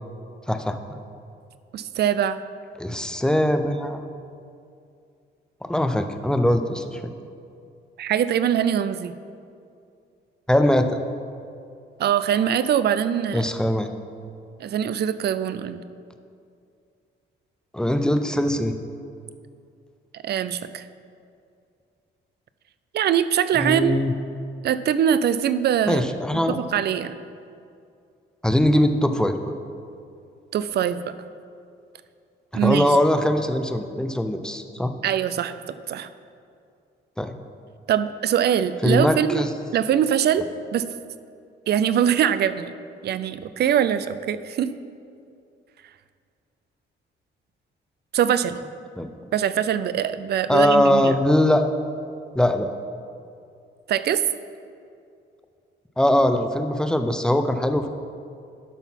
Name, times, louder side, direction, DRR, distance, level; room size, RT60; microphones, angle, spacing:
voice 1, 0.5-1.0 2.8-4.1 5.6-7.0 10.5-10.9 13.3-13.9 17.7-18.7 23.5-24.1 25.9-26.6 28.4-29.4 32.5-34.9 37.2-37.3 38.8-39.5 49.0-49.1 50.5-51.7 52.3-52.7 56.0-57.9, left 1 dB, 5° left, 7 dB, 0.6 m, -21 dB
voice 2, 1.7-2.4 8.0-9.1 12.0-13.5 14.6-15.8 20.1-20.9 22.9-24.0 24.6-26.1 26.5-27.1 30.5-31.1 32.5-32.9 35.0-36.1 37.9-39.4 39.7-40.8 41.7-42.7 43.0-44.7 48.1-48.6 49.3-51.1 53.9-54.2, right 9 dB, 55° right, 13 dB, 0.4 m, -23 dB
11.5 x 4.0 x 5.8 m, 2.4 s
cardioid pair, 90°, 20 cm